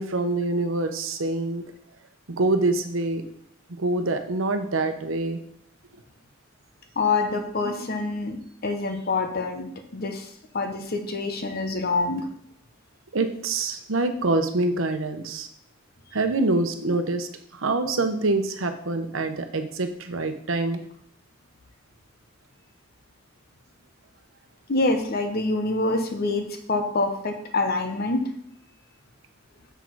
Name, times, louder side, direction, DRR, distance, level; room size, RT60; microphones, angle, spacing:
voice 1, 0.0-1.6 2.3-3.2 3.8-5.4 13.1-15.5 16.1-20.8, right 2 dB, 80° right, 7 dB, 0.9 m, -25 dB
voice 2, 7.0-12.3 24.7-28.2, left 3 dB, 50° left, 5 dB, 1.0 m, -26 dB
6.9 x 6.3 x 4.6 m, 0.68 s
head